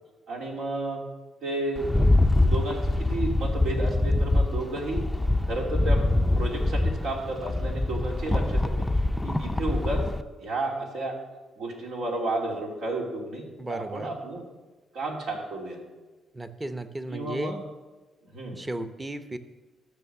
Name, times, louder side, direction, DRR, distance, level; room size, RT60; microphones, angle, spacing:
voice 1, 0.3-1.0 1.4-1.9 2.4-5.0 5.4-6.0 6.3-8.6 9.2-10.0 10.4-11.1 11.6-14.4 14.9-15.8 17.1-17.6 18.3-18.6, right 2 dB, 80° right, -1 dB, 2.9 m, -32 dB
Rattle, 1.8-10.2, left 2 dB, 10° left, 0.5 m, -24 dB
voice 2, 13.6-14.2 16.3-17.6 18.5-19.4, right 1 dB, 15° right, 10 dB, 0.8 m, -35 dB
13.5 x 6.6 x 6.9 m, 1.2 s
cardioid pair, 90°, 0 cm